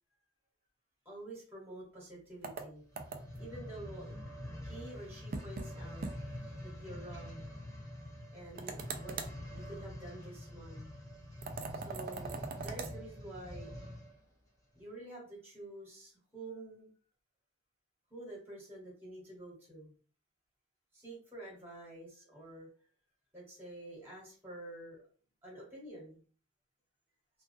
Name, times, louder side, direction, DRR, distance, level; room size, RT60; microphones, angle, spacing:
voice 1, 1.0-2.8 3.4-4.1 4.6-6.0 6.6-7.5 8.3-10.9 11.7-13.7 14.7-16.9 18.1-19.9 20.9-22.7 23.3-25.0 25.4-26.2, right 1 dB, 10° right, -4 dB, 1.1 m, -48 dB
sound 1, 2.4-3.5 5.3-5.7 6.0-6.2 6.5-6.6 8.6-9.4 11.4-12.9, right 4 dB, 45° right, 0.4 m, -41 dB
sound 2, 2.8-14.2 14.8-14.9, left 1 dB, 15° left, 1.0 m, -46 dB
2.3 x 2.2 x 2.6 m, 0.42 s
head